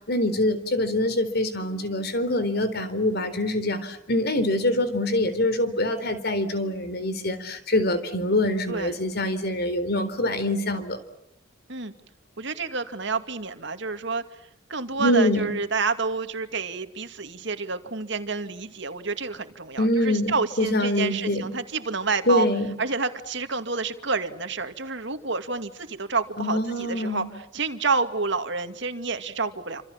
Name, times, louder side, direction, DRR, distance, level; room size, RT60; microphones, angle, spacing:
voice 1, 0.1-11.0 15.0-15.5 19.8-21.4 22.3-22.8 26.4-27.3, left 1 dB, 55° left, 12 dB, 4.0 m, -24 dB
voice 2, 12.4-14.2 14.7-22.5 22.8-27.2 27.5-29.8, right 4 dB, 60° right, 8 dB, 2.4 m, -29 dB
29.0 x 27.0 x 7.4 m, 0.78 s
head